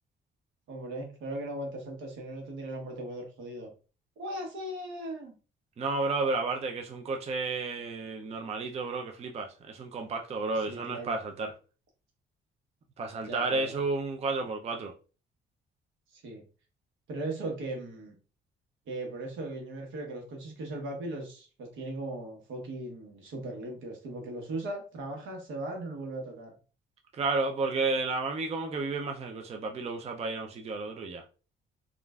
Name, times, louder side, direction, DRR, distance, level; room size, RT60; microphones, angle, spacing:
voice 1, 0.7-3.7 4.2-5.4 10.6-11.2 13.2-13.7 16.1-16.4 17.1-18.1 18.9-26.5, right 1 dB, 80° right, 1.0 m, -38 dB
voice 2, 5.8-11.5 13.0-14.9 27.1-31.2, right 3 dB, 30° right, 0.4 m, -32 dB
3.1 x 2.4 x 2.3 m
cardioid pair, 90°, 20 cm